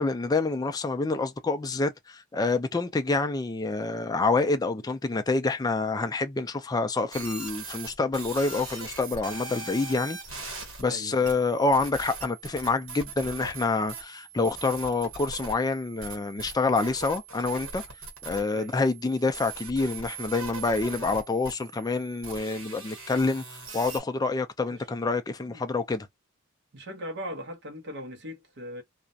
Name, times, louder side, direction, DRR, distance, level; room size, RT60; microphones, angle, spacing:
voice 1, 0.0-17.8 18.3-26.1, left 3 dB, 20° left, 0.3 m, -27 dB
sound 1, 7.1-24.0, right 4 dB, 80° right, 1.2 m, -41 dB
voice 2, 10.9-11.3 18.5-18.8 24.7-24.8 25.5-25.6 26.7-28.8, equal, 60° right, 0.8 m, -39 dB
2.4 x 2.1 x 2.6 m
head